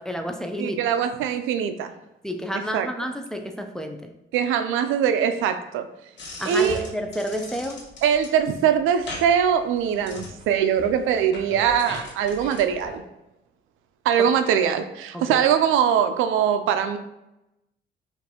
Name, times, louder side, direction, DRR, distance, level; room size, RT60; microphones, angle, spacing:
voice 1, 0.0-0.8 2.2-4.1 6.4-7.9 15.1-15.4, equal, 5° left, 5 dB, 0.4 m, -30 dB
voice 2, 0.6-1.9 2.7-2.9 4.3-5.9 6.4-6.8 8.0-13.0 14.1-17.0, right 8 dB, 90° right, 9 dB, 0.4 m, -22 dB
sound 1, 6.2-13.0, left 2 dB, 65° left, 1.2 m, -40 dB
5.3 x 2.6 x 2.8 m, 0.91 s
cardioid pair, 90°, 20 cm